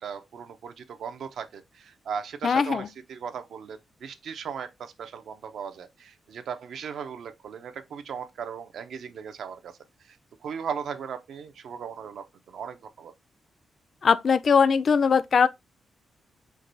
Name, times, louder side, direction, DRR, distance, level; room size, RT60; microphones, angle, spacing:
voice 1, 0.0-9.8 10.0-10.2 10.4-13.1, right 7 dB, 75° right, 0.6 m, -37 dB
voice 2, 2.4-2.9 14.0-15.5, left 6 dB, 50° left, 0.4 m, -20 dB
4.6 x 2.2 x 3.9 m
cardioid pair, 105°, 0 cm